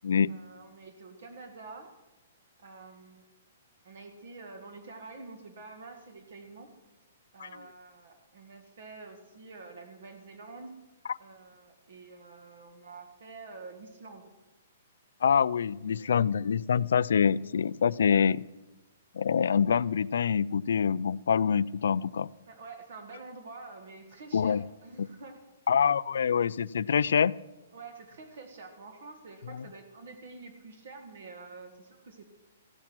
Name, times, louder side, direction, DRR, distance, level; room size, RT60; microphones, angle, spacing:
voice 1, 0.3-1.9 2.6-3.2 3.8-6.7 7.3-10.7 11.2-14.3 15.9-16.4 22.5-25.4 27.7-32.3, right 3 dB, 50° right, 5 dB, 1.7 m, -47 dB
voice 2, 15.2-18.4 19.1-22.3 24.3-24.6 25.0-25.1 25.7-27.3 29.5-29.6, left 7 dB, 70° left, 19 dB, 0.4 m, -25 dB
15.5 x 12.0 x 6.1 m, 1.1 s
hypercardioid pair, 180°, 0 cm